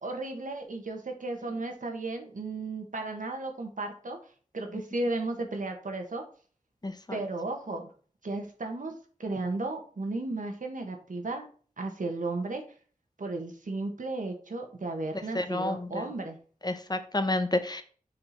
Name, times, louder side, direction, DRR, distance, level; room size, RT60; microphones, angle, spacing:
voice 1, 0.0-4.2 4.5-6.2 7.1-7.9 8.2-8.9 9.2-11.5 11.8-12.6 13.2-16.4, right 2 dB, 75° right, 4 dB, 1.5 m, -34 dB
voice 2, 6.8-7.2 15.3-16.0 16.6-17.8, left 2 dB, 30° left, 8 dB, 0.8 m, -30 dB
6.6 x 4.5 x 4.2 m, 0.42 s
wide cardioid pair, 65°, 13 cm